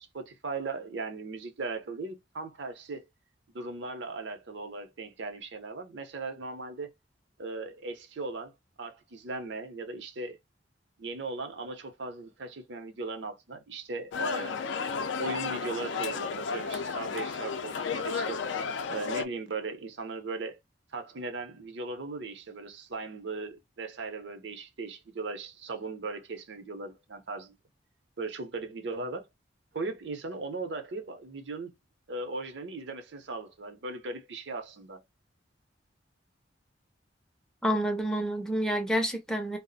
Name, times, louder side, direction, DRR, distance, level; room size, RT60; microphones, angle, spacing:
voice 1, 0.0-3.0 3.5-6.9 7.4-8.5 8.8-10.4 11.0-14.6 15.2-18.4 18.9-20.6 20.9-27.5 28.2-29.3 29.7-31.7 32.1-35.0, right 3 dB, 70° right, 0.6 m, -38 dB
sound 1, 14.1-19.3, left 5 dB, 75° left, 0.4 m, -33 dB
voice 2, 37.6-39.6, equal, 5° left, 0.5 m, -28 dB
2.4 x 2.0 x 3.9 m
head